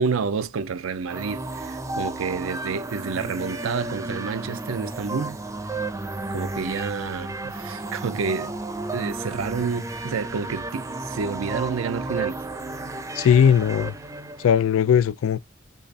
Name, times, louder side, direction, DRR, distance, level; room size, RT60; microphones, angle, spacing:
voice 1, 0.0-5.4 6.3-8.5 8.9-12.4, right 5 dB, 80° right, 0.5 m, -29 dB
sound 1, 1.1-14.6, right 2 dB, 15° right, 0.6 m, -33 dB
voice 2, 13.2-13.9 14.4-15.4, left 8 dB, 85° left, 0.3 m, -18 dB
5.4 x 2.4 x 4.0 m
head